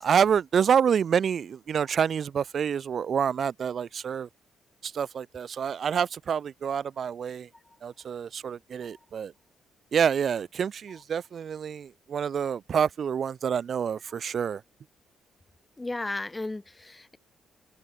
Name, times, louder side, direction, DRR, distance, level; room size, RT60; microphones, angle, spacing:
voice 1, 0.0-4.3 4.8-7.5 7.8-9.3 9.9-14.6, right 7 dB, 55° right, 0.6 m, -27 dB
voice 2, 15.8-17.2, left 2 dB, 15° left, 1.4 m, -34 dB
cardioid pair, 100°, 0 cm